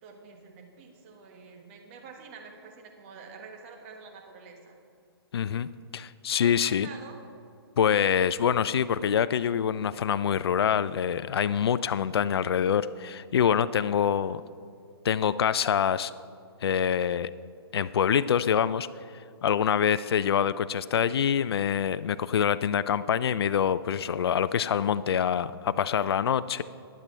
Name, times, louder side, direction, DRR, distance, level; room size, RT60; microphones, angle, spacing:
voice 1, 0.0-4.7 6.3-7.2, right 5 dB, 30° right, 2 dB, 1.5 m, -47 dB
voice 2, 5.3-6.9 7.8-14.4 15.0-16.1 16.6-17.3 17.7-18.9 19.4-26.6, left 8 dB, 70° left, 15 dB, 0.4 m, -25 dB
22.5 x 7.5 x 3.3 m, 2.4 s
hypercardioid pair, 155°, 14 cm